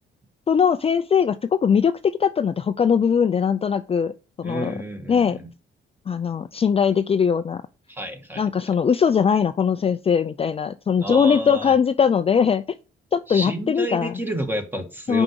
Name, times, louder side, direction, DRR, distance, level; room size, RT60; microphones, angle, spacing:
voice 1, 0.5-4.1 4.4-4.8 5.1-5.4 6.1-7.6 8.4-12.6 13.1-14.1 15.1-15.2, left 7 dB, 30° left, 0.4 m, -20 dB
voice 2, 4.4-5.5 7.9-8.4 11.0-11.7 13.3-15.2, right 1 dB, 10° right, 1.7 m, -30 dB
5.9 x 4.9 x 6.6 m
cardioid pair, 90°, 20 cm